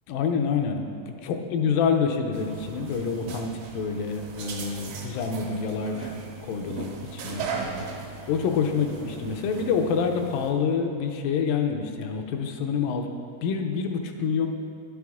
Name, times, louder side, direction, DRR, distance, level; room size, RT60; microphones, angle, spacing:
voice 1, 0.1-6.2 6.4-7.5 7.8-8.0 8.3-13.1 13.4-14.5, left 6 dB, 85° left, 4 dB, 2.3 m, -27 dB
sound 1, 2.3-10.5, right 4 dB, 75° right, 2.4 m, -38 dB
10.5 x 6.2 x 3.5 m, 2.7 s
omnidirectional pair, 3.9 m